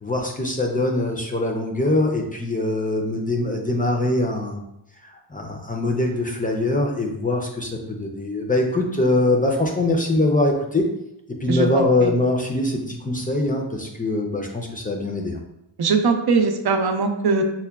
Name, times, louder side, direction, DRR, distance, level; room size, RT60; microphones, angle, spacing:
voice 1, 0.0-4.6 5.0-10.9 11.4-15.4, left 2 dB, 20° left, 0 dB, 0.4 m, -23 dB
voice 2, 11.5-12.1 15.8-17.4, right 4 dB, 60° right, 4 dB, 0.5 m, -21 dB
5.5 x 2.1 x 2.3 m, 0.83 s
wide cardioid pair, 100°, 44 cm